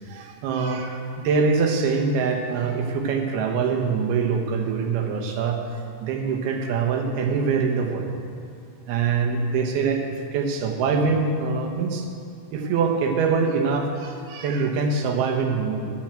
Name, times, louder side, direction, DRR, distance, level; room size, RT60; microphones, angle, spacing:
voice 1, 0.1-5.6 6.0-8.1 8.9-12.1 12.5-15.9, right 5 dB, 80° right, 2 dB, 3.1 m, -24 dB
12.0 x 7.5 x 8.8 m, 2.4 s
omnidirectional pair, 4.5 m